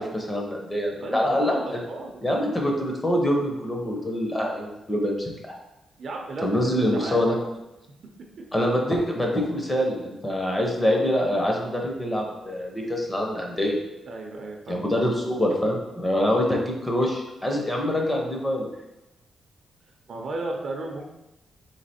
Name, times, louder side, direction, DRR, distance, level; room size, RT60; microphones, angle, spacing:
voice 1, 0.0-1.8 2.2-5.5 6.4-7.4 8.5-13.8 14.7-18.7, left 1 dB, 15° left, 0 dB, 0.6 m, -25 dB
voice 2, 1.0-2.2 6.0-6.5 6.9-7.5 14.1-14.9 20.1-21.1, right 2 dB, 50° right, 2 dB, 0.6 m, -34 dB
3.3 x 3.3 x 4.2 m, 0.96 s
wide cardioid pair, 165°, 0 cm